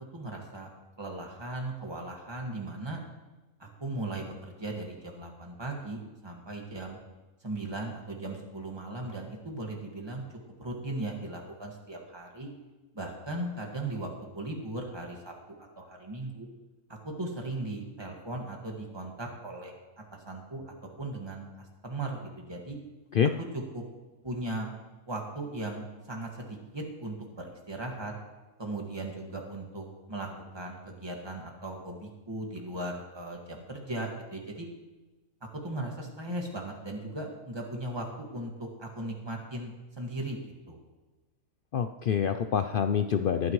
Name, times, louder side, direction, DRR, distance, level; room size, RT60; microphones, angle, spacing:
voice 1, 0.1-0.7 1.0-3.0 3.6-7.0 7.4-10.2 10.6-12.5 12.9-14.1 14.3-16.5 16.9-19.7 20.1-22.8 23.7-23.8 24.2-24.7 25.1-28.1 28.6-30.3 30.5-34.7 35.6-40.4 40.7-40.8, right 2 dB, 15° right, 0 dB, 1.9 m, -38 dB
voice 2, 41.7-43.5, left 8 dB, 85° left, 8 dB, 0.4 m, -26 dB
19.5 x 9.6 x 3.2 m, 1.1 s
omnidirectional pair, 1.5 m